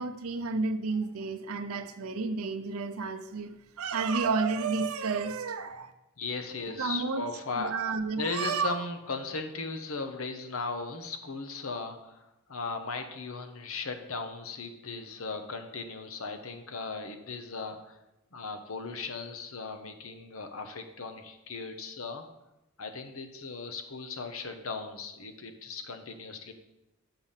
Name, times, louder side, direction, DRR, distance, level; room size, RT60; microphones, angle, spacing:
voice 1, 0.0-3.5 3.8-5.9 6.8-7.3 7.6-8.8, right 4 dB, 90° right, 0.6 m, -31 dB
voice 2, 6.2-7.7 8.2-12.2 12.5-18.0 18.3-22.2 22.8-26.5, left 4 dB, 75° left, 1.0 m, -37 dB
7.0 x 5.8 x 5.7 m
head